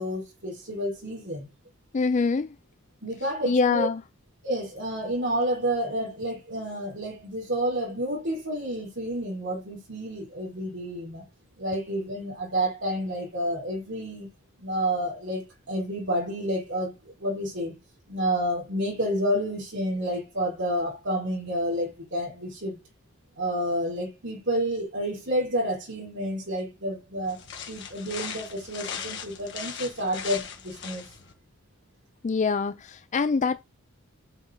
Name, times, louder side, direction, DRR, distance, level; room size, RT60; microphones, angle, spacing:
voice 1, 0.0-1.5 3.0-3.9 4.4-11.2 11.6-14.3 14.6-17.7 18.1-22.8 23.3-27.4 27.7-31.0, equal, 55° right, 5.0 m, -29 dB
voice 2, 1.9-2.6 3.5-4.0 32.2-33.6, left 4 dB, 35° left, 0.4 m, -24 dB
sound 1, 27.2-31.3, left 7 dB, 55° left, 1.7 m, -38 dB
9.1 x 5.4 x 3.8 m
head